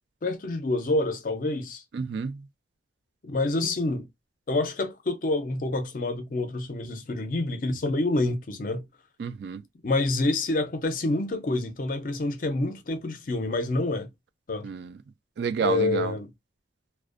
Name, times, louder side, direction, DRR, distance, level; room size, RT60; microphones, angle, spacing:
voice 1, 0.2-1.8 3.2-4.1 4.5-8.9 9.8-14.1 14.5-14.7 15.6-16.3, left 2 dB, 45° left, 0.5 m, -27 dB
voice 2, 1.9-2.4 9.2-9.6 14.6-15.0 15.4-16.2, right 6 dB, 65° right, 0.3 m, -30 dB
2.4 x 2.1 x 2.4 m
head